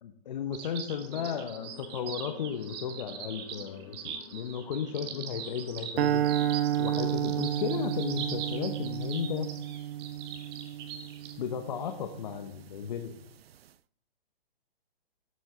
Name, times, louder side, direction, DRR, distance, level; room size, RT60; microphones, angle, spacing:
voice 1, 0.0-6.2 6.8-9.5 11.4-13.2, left 8 dB, 45° left, 7 dB, 0.9 m, -34 dB
sound 1, 0.5-11.3, right 8 dB, 25° right, 1.1 m, -41 dB
sound 2, 1.0-7.5, left 6 dB, 30° left, 1.1 m, -50 dB
sound 3, 6.0-12.3, right 11 dB, 80° right, 0.5 m, -31 dB
12.5 x 7.9 x 3.7 m, 0.65 s
hypercardioid pair, 155°, 30 cm